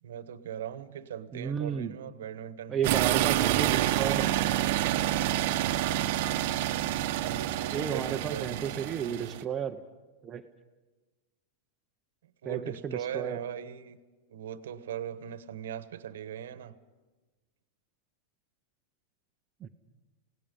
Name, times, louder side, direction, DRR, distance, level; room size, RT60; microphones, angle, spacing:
voice 1, 0.0-4.1 7.2-9.4 12.2-14.0 14.3-16.7, right 9 dB, 90° right, 13 dB, 1.1 m, -40 dB
voice 2, 1.3-1.9 2.7-4.3 7.7-9.8 10.2-10.4 12.4-13.4 19.6-19.7, right 7 dB, 20° right, 7 dB, 0.7 m, -33 dB
sound 1, 2.8-9.4, right 13 dB, 50° right, 0.9 m, -28 dB
28.0 x 18.0 x 5.4 m, 1.2 s
supercardioid pair, 170°, 0 cm